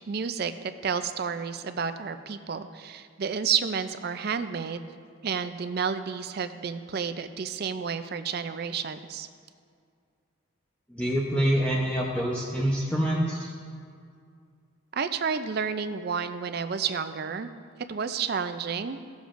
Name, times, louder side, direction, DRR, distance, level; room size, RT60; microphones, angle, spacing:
voice 1, 0.0-4.8 5.2-9.3 14.9-17.5 17.9-19.0, right 6 dB, 50° right, 10 dB, 0.4 m, -31 dB
voice 2, 10.9-13.5, equal, 5° left, -5 dB, 0.7 m, -26 dB
16.0 x 7.1 x 2.5 m, 2.2 s
head